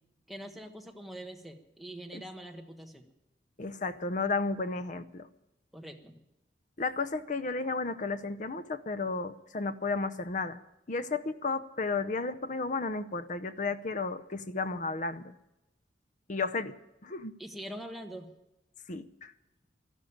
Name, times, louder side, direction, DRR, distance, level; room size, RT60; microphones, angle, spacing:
voice 1, 0.3-3.1 5.7-6.2 17.4-18.3, right 1 dB, ahead, 3 dB, 1.3 m, -44 dB
voice 2, 3.6-5.3 6.8-10.6 10.9-15.3 16.3-16.7 17.0-17.3 18.9-19.3, left 3 dB, 45° left, 12 dB, 0.8 m, -33 dB
13.0 x 11.5 x 8.6 m, 0.94 s
head